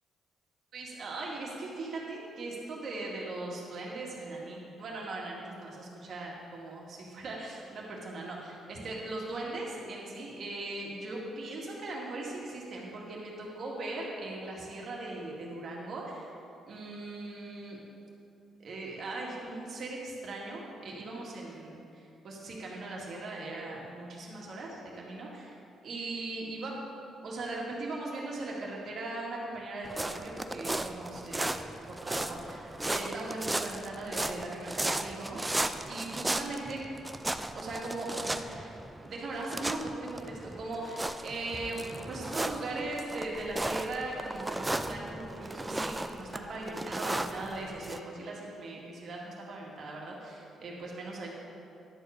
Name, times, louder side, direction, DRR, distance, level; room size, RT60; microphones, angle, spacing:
voice 1, 0.7-16.3 16.7-17.8 18.6-25.5 25.8-26.7 27.2-31.6 31.9-35.5 35.9-36.8 37.5-38.7 39.0-51.3, right 2 dB, 60° right, -3 dB, 2.1 m, -39 dB
sound 1, 29.8-48.0, right 1 dB, 15° right, 0.4 m, -36 dB
11.0 x 4.7 x 6.4 m, 2.7 s
cardioid pair, 90°, 0 cm